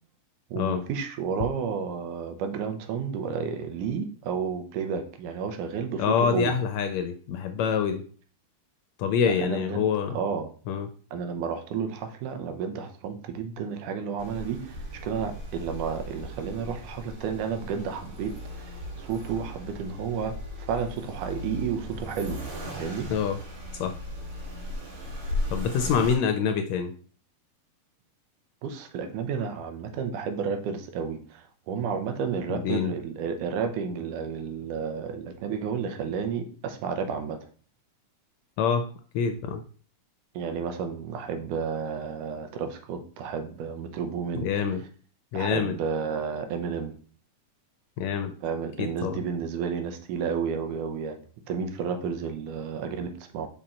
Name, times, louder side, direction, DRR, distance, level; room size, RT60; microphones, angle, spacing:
voice 1, 0.5-6.5 9.3-9.9 10.1-10.5 11.1-18.7 19.0-22.4 22.8-23.1 28.6-37.4 40.4-44.5 45.3-47.0 48.4-51.2 51.5-53.5, right 6 dB, 85° right, 7 dB, 2.4 m, -31 dB
voice 2, 6.0-8.0 9.0-10.2 10.7-10.9 23.1-23.4 23.8-23.9 25.5-26.9 32.5-32.9 38.6-38.9 39.1-39.6 44.4-44.8 45.3-45.8 48.0-48.3 48.8-49.1, left 7 dB, 80° left, 7 dB, 1.6 m, -26 dB
Accelerating revving vroom, 14.2-26.1, left 1 dB, 55° right, 2.1 m, -37 dB
5.7 x 5.2 x 4.2 m, 0.42 s
omnidirectional pair, 3.6 m